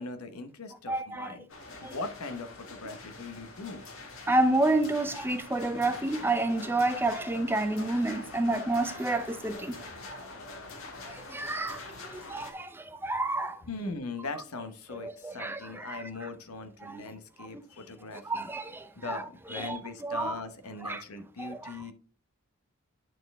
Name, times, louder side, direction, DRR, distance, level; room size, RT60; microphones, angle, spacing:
voice 1, 0.0-1.4 1.8-3.8 13.7-18.5 19.0-21.9, left 3 dB, 85° left, 0.9 m, -40 dB
voice 2, 0.9-1.3 1.8-1.9 4.3-9.8 10.2-10.3 11.1-13.6 14.9-16.3 16.8-17.1 17.4-17.6 18.1-19.2 19.5-20.3 20.8-21.0 21.4-21.9, right 2 dB, 10° right, 0.5 m, -30 dB
sound 1, 1.5-12.5, left 2 dB, 65° left, 1.5 m, -44 dB
9.2 x 4.3 x 3.5 m
head